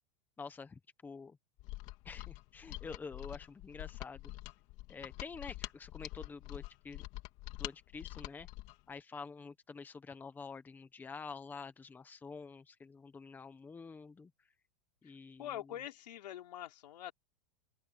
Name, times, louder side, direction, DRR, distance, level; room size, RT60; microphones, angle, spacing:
voice 1, 0.4-1.4 2.0-4.3 4.9-7.0 7.6-8.5 8.9-14.3 15.0-15.6, left 5 dB, 10° left, 1.1 m, -48 dB
Mechanisms, 1.6-8.8, left 19 dB, 35° left, 2.2 m, -46 dB
voice 2, 15.4-17.1, left 12 dB, 85° left, 3.7 m, -44 dB
open air
supercardioid pair, 160°, 20 cm